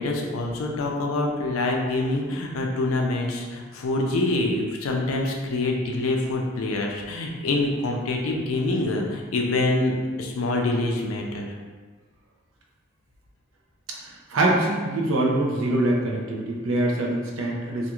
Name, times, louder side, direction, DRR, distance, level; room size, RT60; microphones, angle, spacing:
voice 1, 0.0-11.5, left 2 dB, 80° left, 1 dB, 0.4 m, -25 dB
voice 2, 13.9-17.9, right 1 dB, 70° right, -2 dB, 0.5 m, -24 dB
2.5 x 2.3 x 2.9 m, 1.5 s
head